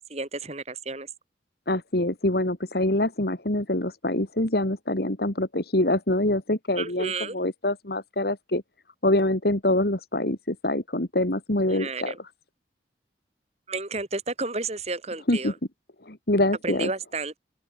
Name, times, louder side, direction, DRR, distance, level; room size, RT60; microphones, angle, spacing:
voice 1, 0.1-1.1 6.8-7.4 11.7-12.1 13.7-15.5 16.6-17.4, right 3 dB, 35° right, 3.2 m, -32 dB
voice 2, 1.7-8.6 9.0-12.2 15.3-15.5 16.0-16.9, left 1 dB, 60° left, 2.6 m, -25 dB
open air
head